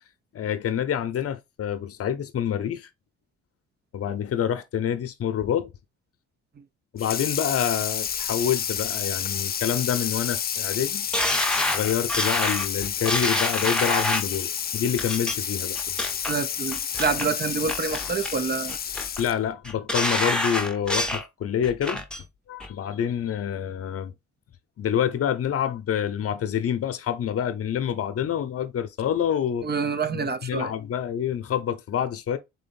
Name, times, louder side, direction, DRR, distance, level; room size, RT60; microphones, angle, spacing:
voice 1, 0.3-2.9 3.9-5.7 6.9-11.1 11.7-15.8 19.2-22.0 22.5-24.1 24.8-29.7 30.1-32.4, left 9 dB, 50° left, 0.8 m, -27 dB
Water tap faucet / Sink (filling or washing), 7.0-19.5, left 8 dB, 30° left, 0.4 m, -30 dB
sound 1, 11.1-14.4 15.0-15.3 15.8-16.3 16.7-17.3 17.7-18.4 18.7-19.2 19.6-21.3 21.6-22.2 22.6-22.7, left 1 dB, 5° left, 0.8 m, -27 dB
voice 2, 16.3-18.8 29.6-30.7, right 5 dB, 35° right, 0.6 m, -27 dB
4.0 x 3.1 x 4.2 m
cardioid pair, 90°, 30 cm